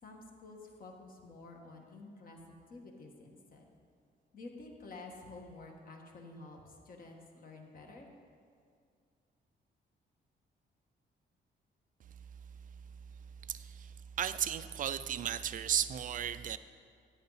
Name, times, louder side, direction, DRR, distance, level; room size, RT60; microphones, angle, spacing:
voice 1, 0.0-2.4 2.7-3.7 4.3-8.1, left 3 dB, 50° left, 1 dB, 1.6 m, -50 dB
voice 2, 13.5-13.9 14.2-16.6, right 9 dB, 45° right, 13 dB, 0.4 m, -34 dB
14.0 x 9.8 x 4.1 m, 2.2 s
cardioid pair, 150°, 19 cm